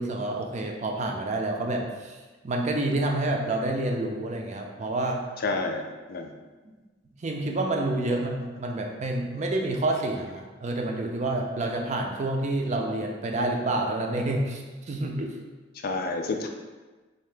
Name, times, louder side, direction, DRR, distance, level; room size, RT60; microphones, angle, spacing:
voice 1, 0.0-2.2 2.4-5.2 6.6-6.7 7.2-15.3, right 2 dB, 35° right, 2 dB, 0.4 m, -28 dB
voice 2, 5.4-5.8 6.1-6.3 8.1-8.2 15.8-16.5, left 3 dB, 50° left, 4 dB, 0.4 m, -29 dB
3.9 x 2.7 x 3.3 m, 1.3 s
head